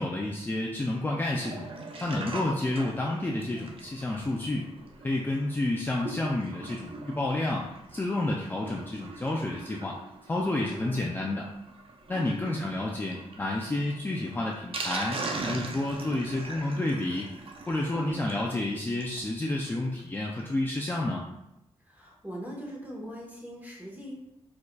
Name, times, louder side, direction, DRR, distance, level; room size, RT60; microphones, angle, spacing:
voice 1, 0.0-1.7 2.0-4.7 5.0-10.0 10.3-11.5 12.1-17.3 17.7-21.2, left 2 dB, 15° left, -2 dB, 0.4 m, -30 dB
Sink (filling or washing), 1.3-19.3 19.7-19.8 19.9-20.0 20.4-20.5, right 3 dB, 55° right, 0.6 m, -41 dB
voice 2, 10.6-11.0 12.1-12.3 17.9-18.1 21.8-24.1, equal, 15° right, -3 dB, 1.3 m, -41 dB
4.7 x 4.4 x 2.3 m, 0.85 s
wide cardioid pair, 135°, 11 cm